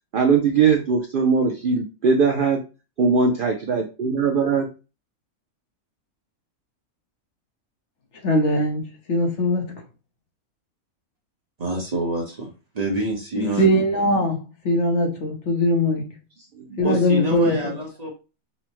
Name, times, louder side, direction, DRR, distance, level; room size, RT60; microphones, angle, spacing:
voice 1, 0.1-2.6 3.0-4.7 16.7-17.0, right 5 dB, 80° right, 0.4 m, -20 dB
voice 2, 8.2-9.8 13.4-16.1 16.8-17.8, equal, 60° left, 1.0 m, -21 dB
voice 3, 11.6-12.5 12.7-13.8 16.8-18.1, right 1 dB, 35° right, 0.9 m, -26 dB
5.4 x 2.0 x 3.0 m
omnidirectional pair, 1.5 m